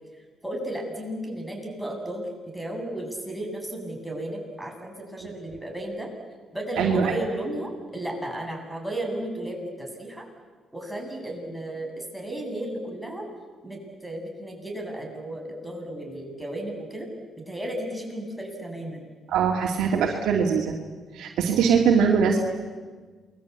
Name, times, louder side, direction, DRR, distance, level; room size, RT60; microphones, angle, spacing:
voice 1, 0.4-2.3 2.5-6.1 6.5-10.2 10.7-13.3 13.6-17.1 17.5-19.1, right 1 dB, ahead, 0 dB, 7.8 m, -34 dB
voice 2, 6.8-7.1 19.3-20.7 21.1-22.4, right 6 dB, 80° right, 0 dB, 2.7 m, -22 dB
28.5 x 22.0 x 8.5 m, 1.4 s
cardioid pair, 90°, 0 cm